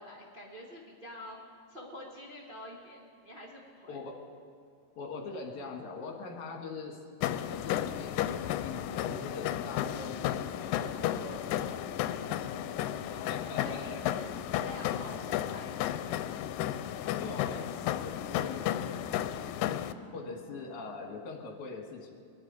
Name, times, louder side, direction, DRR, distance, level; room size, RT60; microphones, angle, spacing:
voice 1, 0.0-1.4 1.7-4.0 13.1-14.2 14.6-15.9 19.8-20.7, equal, 45° right, -4 dB, 0.6 m, -47 dB
voice 2, 5.0-7.0 7.5-10.2 10.6-11.8 12.2-12.6 13.3-14.0 17.2-19.5 20.1-22.2, left 4 dB, 65° left, 2 dB, 2.8 m, -43 dB
sound 1, 7.2-19.9, left 11 dB, 85° left, 2.2 m, -33 dB
22.5 x 11.0 x 5.2 m, 2.2 s
omnidirectional pair, 3.9 m